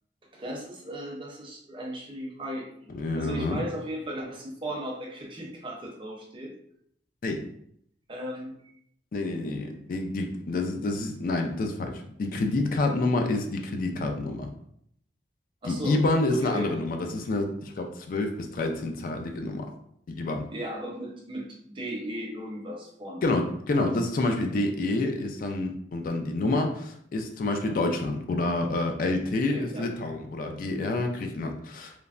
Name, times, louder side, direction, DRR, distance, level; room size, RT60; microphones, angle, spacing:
voice 1, 0.3-6.5 8.1-8.7 9.5-9.6 15.6-16.0 16.3-16.7 20.5-23.3 27.6-27.7 29.5-29.9, equal, 30° right, -2 dB, 0.6 m, -37 dB
voice 2, 2.9-3.6 7.2-7.5 9.1-14.5 15.6-19.7 20.1-20.5 23.2-31.9, left 2 dB, 50° left, 4 dB, 0.3 m, -28 dB
3.1 x 2.0 x 2.4 m, 0.69 s
head